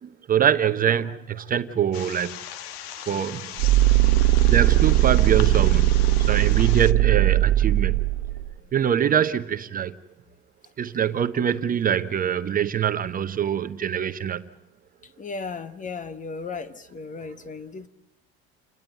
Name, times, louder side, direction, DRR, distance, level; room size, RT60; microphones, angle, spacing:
voice 1, 0.0-2.4 3.0-3.5 4.5-8.0 8.7-10.0 10.8-14.5, right 9 dB, 30° right, 9 dB, 0.8 m, -24 dB
sound 1, 1.9-6.9, left 11 dB, 90° left, 1.2 m, -38 dB
sound 2, 3.6-8.5, right 15 dB, 65° right, 1.0 m, -19 dB
voice 2, 15.2-17.9, left 4 dB, 25° left, 14 dB, 1.3 m, -35 dB
29.5 x 10.5 x 9.3 m, 0.92 s
supercardioid pair, 125°, 30 cm